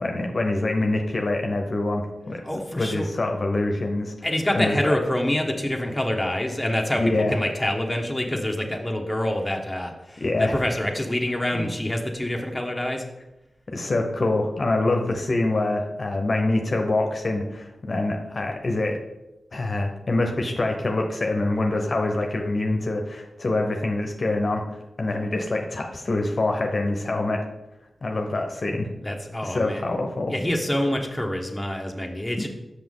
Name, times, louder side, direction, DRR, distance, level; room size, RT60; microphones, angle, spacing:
voice 1, 0.0-2.4 2.8-4.1 4.5-5.0 7.0-7.3 10.2-10.6 11.5-11.7 13.7-19.0 19.5-27.4 28.0-28.9 29.4-30.3, left 2 dB, 55° left, 3 dB, 0.9 m, -25 dB
voice 2, 2.4-3.1 4.2-7.0 7.3-13.0 29.0-29.8 30.3-32.5, left 1 dB, 10° left, 1 dB, 1.2 m, -26 dB
6.2 x 5.8 x 3.7 m, 0.94 s
cardioid pair, 45°, 0 cm